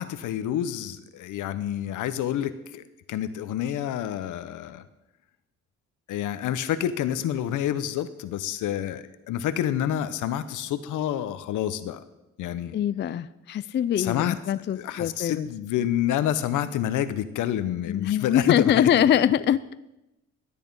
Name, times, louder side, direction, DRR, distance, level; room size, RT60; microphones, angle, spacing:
voice 1, 0.0-2.8 3.1-4.8 6.1-12.0 12.4-12.7 14.0-14.4 14.7-19.1, left 11 dB, 85° left, 12 dB, 0.9 m, -28 dB
voice 2, 12.7-15.5 17.9-19.6, left 10 dB, 40° left, 15 dB, 0.4 m, -23 dB
13.0 x 8.5 x 5.4 m, 0.93 s
cardioid pair, 90°, 30 cm